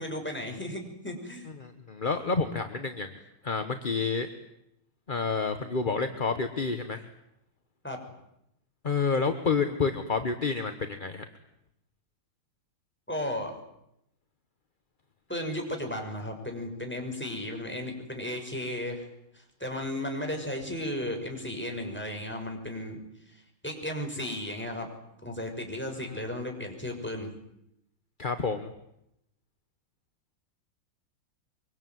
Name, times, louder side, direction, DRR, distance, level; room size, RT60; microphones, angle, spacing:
voice 1, 0.0-1.5 7.8-8.0 13.1-13.5 15.3-19.1 19.3-23.0 23.3-24.9 25.2-27.3, left 1 dB, 5° left, 3 dB, 6.0 m, -35 dB
voice 2, 1.6-3.1 3.4-4.3 5.1-7.0 8.8-11.2 26.0-26.2 28.2-28.7, left 4 dB, 30° left, 7 dB, 1.1 m, -29 dB
24.5 x 24.0 x 9.4 m, 0.81 s
omnidirectional pair, 2.3 m